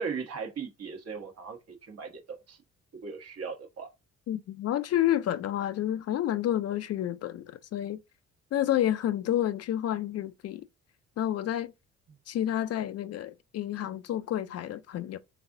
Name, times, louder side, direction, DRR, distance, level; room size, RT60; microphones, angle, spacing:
voice 1, 0.0-2.6 3.0-3.9, right 5 dB, 55° right, 1.1 m, -38 dB
voice 2, 4.3-8.0 8.5-10.6 11.2-11.7 12.3-15.2, left 12 dB, 55° left, 0.4 m, -29 dB
4.0 x 3.6 x 2.5 m
cardioid pair, 90°, 30 cm